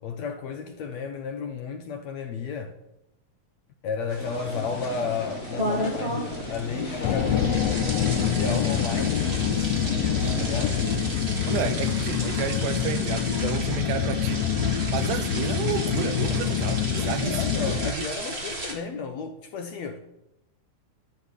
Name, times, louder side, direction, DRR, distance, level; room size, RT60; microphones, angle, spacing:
voice 1, 0.0-2.8 3.8-7.9 8.3-10.8 17.2-20.0, left 5 dB, 70° left, 1.8 m, -33 dB
sound 1, 4.1-18.7, right 1 dB, 20° right, 2.1 m, -34 dB
sound 2, 4.2-11.2, left 2 dB, 55° left, 0.7 m, -36 dB
sound 3, 7.0-17.9, left 9 dB, 90° left, 1.4 m, -26 dB
voice 2, 11.5-14.4 14.9-18.1, right 9 dB, 75° right, 2.2 m, -31 dB
12.0 x 6.8 x 9.8 m
omnidirectional pair, 3.9 m